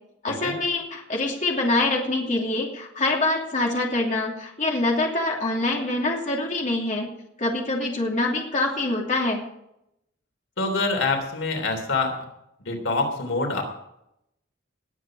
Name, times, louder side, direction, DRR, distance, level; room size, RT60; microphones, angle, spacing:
voice 1, 0.2-7.1 7.4-9.4, left 2 dB, 40° left, -1 dB, 2.7 m, -25 dB
voice 2, 10.6-12.3 12.6-13.6, left 3 dB, 85° left, 4 dB, 3.3 m, -26 dB
19.5 x 8.1 x 4.9 m, 0.80 s
head